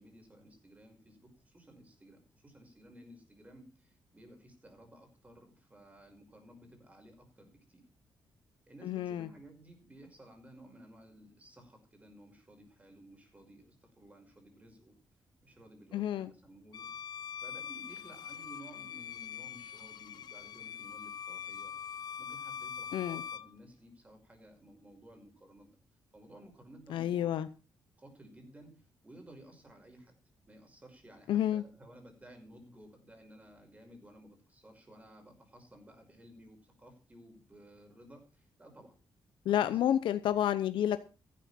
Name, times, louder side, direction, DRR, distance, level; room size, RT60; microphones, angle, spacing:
voice 1, 0.0-7.8 8.7-14.9 15.4-16.9 17.4-21.7 22.2-25.7 26.1-27.3 28.0-30.2 30.5-39.0 39.5-39.8, right 1 dB, 15° right, 4 dB, 5.7 m, -56 dB
voice 2, 8.8-9.3 15.9-16.3 22.9-23.2 26.9-27.5 31.3-31.6 39.4-41.0, left 11 dB, 85° left, 12 dB, 0.8 m, -30 dB
Bowed string instrument, 16.7-23.5, left 8 dB, 60° left, 0.8 m, -43 dB
14.5 x 12.0 x 4.4 m, 0.34 s
cardioid pair, 130°, 8 cm